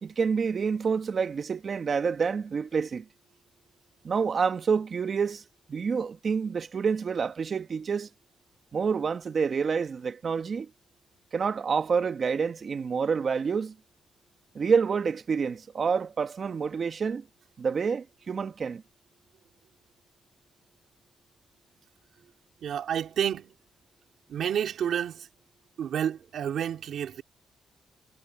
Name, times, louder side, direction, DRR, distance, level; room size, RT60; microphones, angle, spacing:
voice 1, 0.0-3.0 4.0-5.4 5.7-8.1 8.7-10.7 11.3-13.7 14.5-17.2 17.6-18.8, right 5 dB, 50° right, 1.5 m, -28 dB
voice 2, 22.6-23.5 24.3-25.3 25.8-27.2, right 9 dB, 75° right, 3.0 m, -30 dB
cardioid pair, 85°, 0 cm